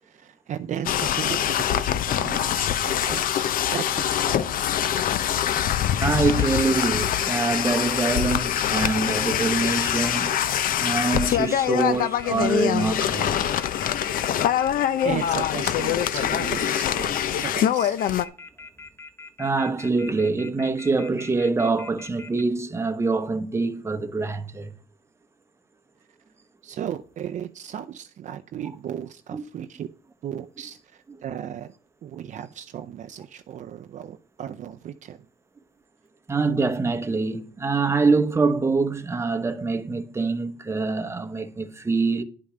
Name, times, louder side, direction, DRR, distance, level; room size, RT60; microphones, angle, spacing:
voice 1, 0.0-4.6 15.0-17.2 17.4-18.0 26.6-29.9 30.2-31.7 32.0-35.2, right 9 dB, 45° right, 0.5 m, -35 dB
sound 1, 0.8-18.2, left 10 dB, 55° left, 0.6 m, -24 dB
voice 2, 6.0-10.3 10.8-13.4 19.4-24.7 29.3-29.4 36.3-42.2, right 3 dB, 15° right, 0.9 m, -25 dB
sound 2, 6.2-22.4, left 3 dB, 15° left, 0.7 m, -43 dB
10.5 x 5.3 x 5.0 m
cardioid pair, 110°, 17 cm